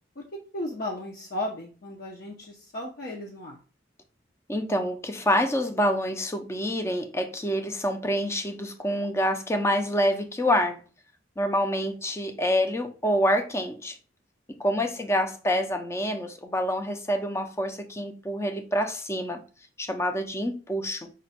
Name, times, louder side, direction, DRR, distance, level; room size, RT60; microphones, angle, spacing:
voice 1, 0.5-3.6 14.7-15.1, left 1 dB, 50° left, 0.7 m, -35 dB
voice 2, 4.5-10.8 11.4-14.0 14.6-19.4 19.8-21.1, equal, 15° left, 0.5 m, -27 dB
5.1 x 2.3 x 4.1 m
head